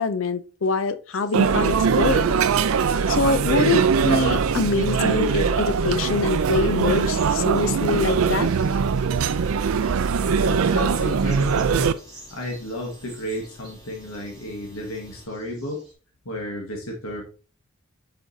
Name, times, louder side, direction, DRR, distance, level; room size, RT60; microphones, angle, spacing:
voice 1, 0.0-2.4 3.1-8.5, left 4 dB, 65° left, 0.5 m, -24 dB
sound 1, 1.1-15.9, right 1 dB, 5° right, 2.9 m, -51 dB
sound 2, 1.3-11.9, right 6 dB, 80° right, 0.4 m, -21 dB
sound 3, 6.1-15.3, left 1 dB, 25° left, 2.8 m, -51 dB
voice 2, 10.4-11.9 12.3-15.8 16.2-17.2, left 1 dB, 85° left, 1.5 m, -32 dB
7.8 x 5.0 x 2.7 m
head